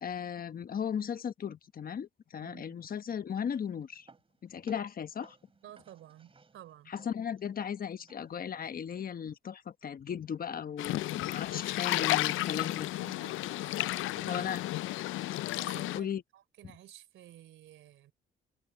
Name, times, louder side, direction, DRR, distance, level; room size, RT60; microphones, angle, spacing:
voice 1, 0.0-4.1 4.4-5.4 6.9-12.9 14.3-14.6 15.9-16.2, left 8 dB, 45° left, 1.2 m, -36 dB
voice 2, 2.4-2.8 5.6-6.9 13.0-14.5 15.5-18.1, right 12 dB, 80° right, 3.9 m, -53 dB
sound 1, 3.3-9.1, right 4 dB, 30° right, 3.0 m, -62 dB
sound 2, 10.8-16.0, left 17 dB, 85° left, 0.5 m, -32 dB
cardioid pair, 90°, 20 cm